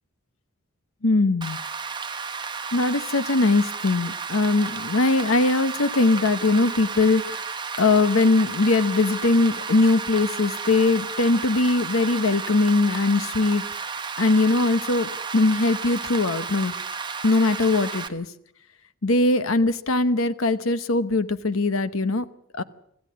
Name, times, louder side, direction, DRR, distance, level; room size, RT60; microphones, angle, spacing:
voice 1, 1.0-1.6 2.7-13.9 14.2-16.7 17.2-18.3 19.0-22.3 22.5-22.6, left 2 dB, 70° left, 12 dB, 0.9 m, -21 dB
Rain, 1.4-18.1, right 5 dB, 20° right, 1.1 m, -33 dB
26.0 x 14.0 x 8.6 m, 0.74 s
head